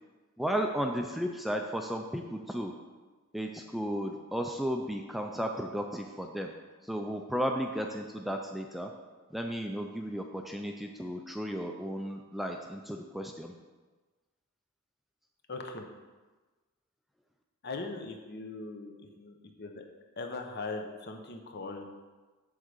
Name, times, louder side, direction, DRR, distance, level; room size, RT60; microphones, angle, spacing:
voice 1, 0.4-2.7 3.3-6.5 6.9-8.9 9.3-13.5, equal, ahead, 2 dB, 0.4 m, -34 dB
voice 2, 15.5-15.9 17.6-19.8 20.2-21.9, left 3 dB, 50° left, 4 dB, 0.8 m, -40 dB
8.0 x 3.7 x 6.4 m, 1.3 s
head